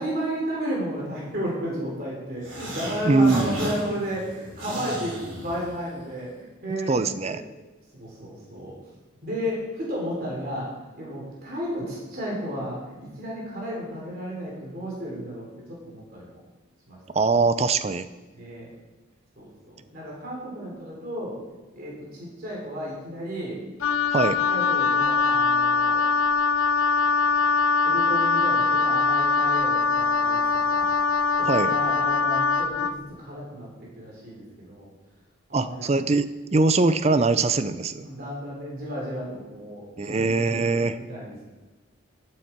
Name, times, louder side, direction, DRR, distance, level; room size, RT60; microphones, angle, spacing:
voice 1, 0.0-7.4 7.9-8.7 9.2-10.7 11.0-16.4 16.9-17.0 18.3-18.7 19.3-21.4 21.7-23.6 24.4-26.0 27.8-30.4 30.7-30.9 31.4-33.7 34.0-34.9 35.5-35.9 38.0-41.4, equal, 45° right, -4 dB, 3.3 m, -33 dB
sound 1, 2.4-6.1, equal, 65° right, 3.7 m, -36 dB
voice 2, 3.0-3.8 6.9-7.4 17.1-18.1 24.1-24.4 31.5-31.7 35.5-38.1 40.0-41.0, right 3 dB, 30° right, 13 dB, 0.4 m, -22 dB
Wind instrument woodwind instrument, 23.8-33.0, left 4 dB, 80° left, 0.5 m, -22 dB
12.0 x 8.6 x 4.5 m, 1.2 s
head